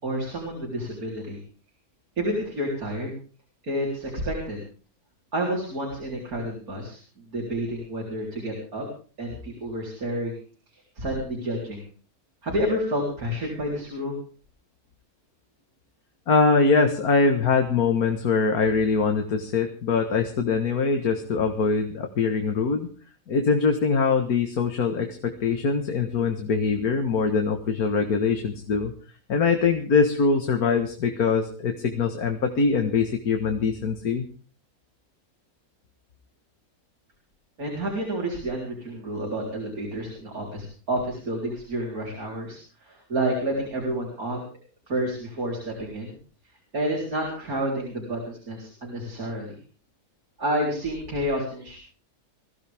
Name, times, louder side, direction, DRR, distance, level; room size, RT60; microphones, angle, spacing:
voice 1, 0.0-1.4 2.2-3.2 3.6-4.7 5.3-8.9 9.2-10.4 11.0-11.8 12.4-14.2 37.6-44.6 44.9-46.2 46.7-49.5 50.4-51.8, right 1 dB, 85° right, -2 dB, 4.6 m, -29 dB
voice 2, 16.3-22.9 23.3-28.9 29.3-34.2, left 4 dB, 90° left, 4 dB, 2.0 m, -23 dB
22.0 x 15.5 x 3.6 m, 0.39 s
omnidirectional pair, 1.5 m